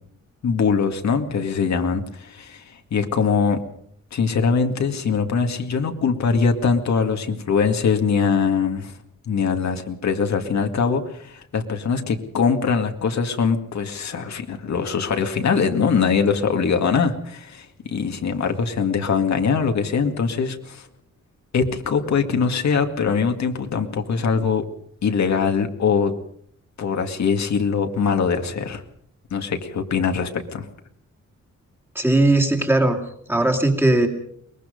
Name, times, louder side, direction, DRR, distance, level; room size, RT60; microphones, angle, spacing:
voice 1, 0.4-3.6 4.1-8.9 9.3-20.9 21.5-24.6 25.0-26.2 26.8-28.8 29.3-30.7, left 5 dB, 70° left, 5 dB, 2.2 m, -22 dB
voice 2, 32.0-33.0 33.3-34.1, right 2 dB, 5° right, 3 dB, 2.4 m, -18 dB
22.5 x 21.5 x 5.3 m, 0.68 s
wide cardioid pair, 170°, 29 cm